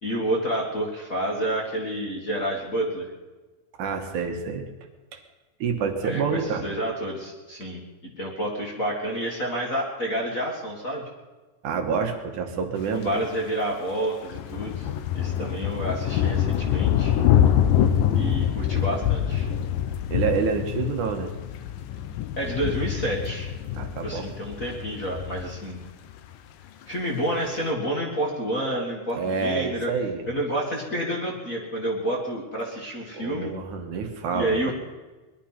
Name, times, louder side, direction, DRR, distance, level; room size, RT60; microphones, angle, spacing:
voice 1, 0.0-3.1 6.0-11.1 12.9-17.1 18.1-19.5 22.4-23.5 24.0-25.8 26.9-29.9 30.3-33.5 34.3-34.7, right 1 dB, 30° left, -1 dB, 1.8 m, -29 dB
voice 2, 3.8-4.6 5.1-5.2 5.6-6.7 11.6-13.2 17.8-18.5 20.1-21.3 23.7-24.3 29.1-30.3 33.1-34.7, right 5 dB, 70° right, 4 dB, 2.8 m, -28 dB
sound 1, 14.3-26.2, left 10 dB, 85° left, 2.6 m, -25 dB
21.0 x 11.5 x 5.8 m, 1.2 s
omnidirectional pair, 3.7 m